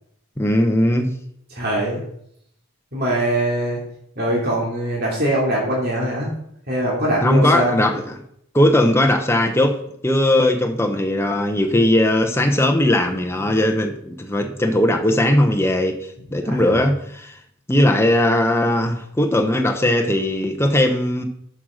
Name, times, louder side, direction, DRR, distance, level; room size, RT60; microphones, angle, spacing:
voice 1, 0.4-1.1 7.2-8.2 8.5-9.8 10.0-17.4 17.7-21.2, left 1 dB, 10° left, 4 dB, 0.9 m, -18 dB
voice 2, 1.5-2.0 2.9-3.8 4.2-6.3 6.7-7.9 16.4-16.6, right 1 dB, 45° right, -4 dB, 2.7 m, -22 dB
7.7 x 6.5 x 6.4 m, 0.73 s
head